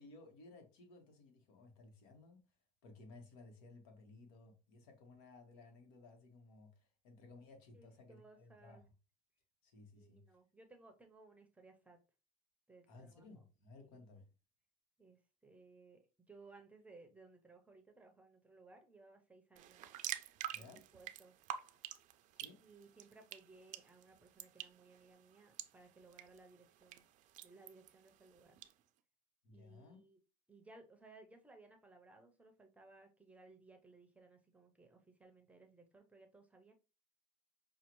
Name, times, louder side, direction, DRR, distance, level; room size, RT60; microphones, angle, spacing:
voice 1, 0.0-2.4 2.8-8.8 9.6-10.2 12.9-14.3 20.5-20.9 22.3-22.6 29.4-30.0, left 3 dB, 80° left, 1.4 m, -58 dB
voice 2, 7.7-8.9 10.0-12.0 12.7-13.4 13.8-14.0 15.0-19.8 20.6-21.4 22.6-27.0 27.4-28.6 29.5-30.2 30.5-36.7, right 3 dB, 10° right, 0.6 m, -61 dB
sound 1, 19.6-28.7, right 12 dB, 50° right, 0.4 m, -49 dB
5.6 x 2.4 x 3.0 m
cardioid pair, 135°, 17 cm